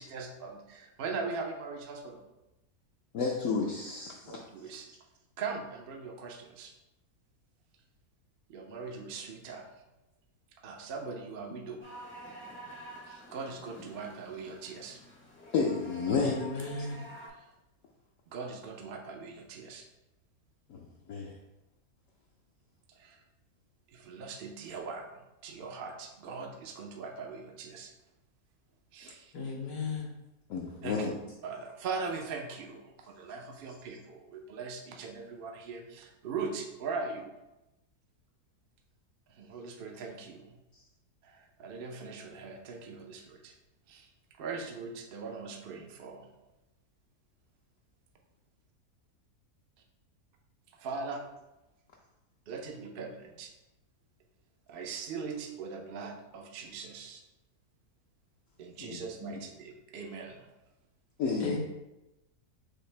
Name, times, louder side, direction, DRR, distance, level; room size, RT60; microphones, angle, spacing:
voice 1, 0.0-2.2 4.2-4.9 5.4-6.7 8.5-9.6 10.6-11.8 13.1-15.0 17.4-17.5 18.3-19.9 22.9-23.2 23.9-25.1 25.4-27.9 28.9-29.3 30.8-31.2 31.4-37.3 39.3-40.6 41.2-43.5 43.9-44.1 44.4-46.3 50.8-51.2 52.5-53.5 54.7-57.2 58.6-60.5, right 4 dB, 60° right, 2 dB, 0.5 m, -40 dB
voice 2, 3.1-4.4 15.5-16.4 20.7-21.4 30.5-31.1 58.8-59.0 61.2-61.6, left 5 dB, 65° left, -2 dB, 0.9 m, -31 dB
sound 1, 11.8-17.3, right 1 dB, 15° left, 0.4 m, -49 dB
voice 3, 16.1-17.0 29.3-30.1 61.4-61.6, left 3 dB, 90° left, -2 dB, 1.6 m, -35 dB
6.4 x 2.6 x 3.2 m, 0.97 s
omnidirectional pair, 1.6 m